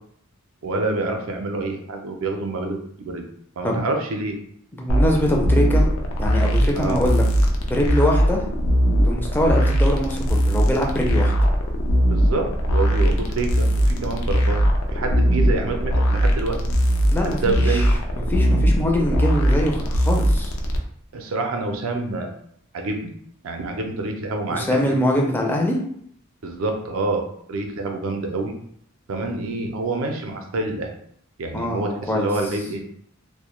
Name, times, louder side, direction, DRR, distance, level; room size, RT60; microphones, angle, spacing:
voice 1, 0.6-3.2 3.6-4.4 6.7-7.0 12.1-14.6 14.9-16.6 17.2-17.9 21.1-22.3 22.7-23.1 23.4-25.0 26.4-28.5 29.1-30.9 31.4-32.8, right 3 dB, 75° right, 3 dB, 0.4 m, -27 dB
voice 2, 4.8-5.9 6.2-7.2 7.6-8.4 8.9-11.3 17.1-17.9 18.1-20.5 24.5-25.8 31.5-32.3, left 1 dB, 10° left, 0 dB, 0.4 m, -23 dB
sound 1, 4.9-20.8, equal, 80° left, 0.4 m, -20 dB
2.1 x 2.1 x 3.0 m, 0.68 s
head